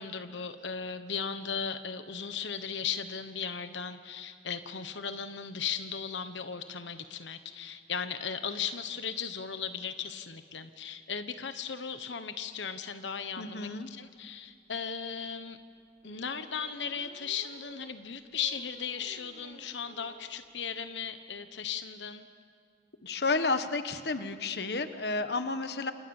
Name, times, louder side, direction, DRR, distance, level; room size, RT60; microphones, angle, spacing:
voice 1, 0.0-15.6 16.0-22.3, left 6 dB, 85° left, 9 dB, 1.2 m, -37 dB
voice 2, 13.4-13.9 23.0-25.9, left 3 dB, 65° left, 9 dB, 1.3 m, -31 dB
sound 1, 14.3-14.4 14.7-14.8 16.0-20.3 20.7-20.8 21.1-21.2 21.3-21.6, right 1 dB, 45° right, 2.4 m, -54 dB
29.5 x 28.0 x 7.2 m, 2.4 s
head